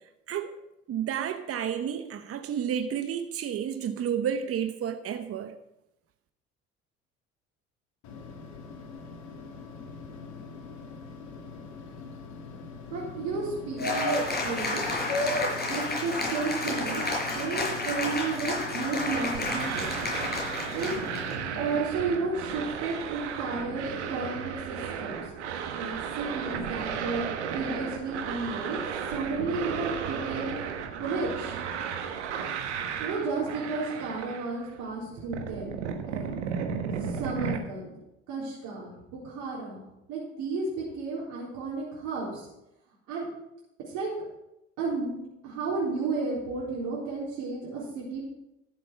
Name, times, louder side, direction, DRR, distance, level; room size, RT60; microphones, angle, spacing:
voice 1, 0.9-5.5, right 8 dB, 40° right, 8 dB, 1.0 m, -31 dB
sound 1, 8.0-21.8, left 5 dB, 55° left, 2.1 m, -43 dB
voice 2, 12.9-14.9 15.7-19.9 20.7-20.9 21.5-25.3 25.7-28.8 29.1-30.6 31.0-31.6 32.8-35.8 36.0-36.3 37.0-37.9 38.3-39.8 40.1-40.7 41.0-42.5 43.1-43.3 43.9-44.1 44.8-45.2 45.4-48.2, right 4 dB, 65° right, -7 dB, 3.9 m, -33 dB
Cheering / Applause, 13.8-21.3, left 2 dB, 30° left, 5.2 m, -30 dB
sound 2, 19.1-34.8 35.1-37.6, right 7 dB, 80° right, 1.3 m, -34 dB
13.0 x 7.6 x 5.8 m, 0.88 s
hypercardioid pair, 60°, 34 cm